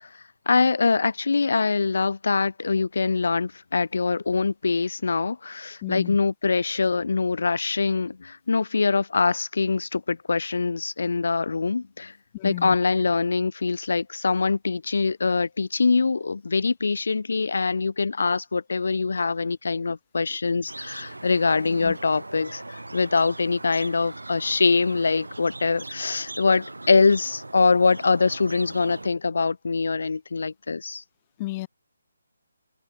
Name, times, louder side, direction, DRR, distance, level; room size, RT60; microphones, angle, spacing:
voice 1, 0.5-12.1 12.4-31.0, left 4 dB, 60° left, 1.0 m, -23 dB
voice 2, 5.8-6.2 12.3-12.8 19.9-20.0 21.8-22.0 31.4-31.7, left 19 dB, 25° left, 0.7 m, -32 dB
sound 1, 20.7-29.1, right 2 dB, 80° right, 3.6 m, -40 dB
figure-of-eight pair, 145°, 0 cm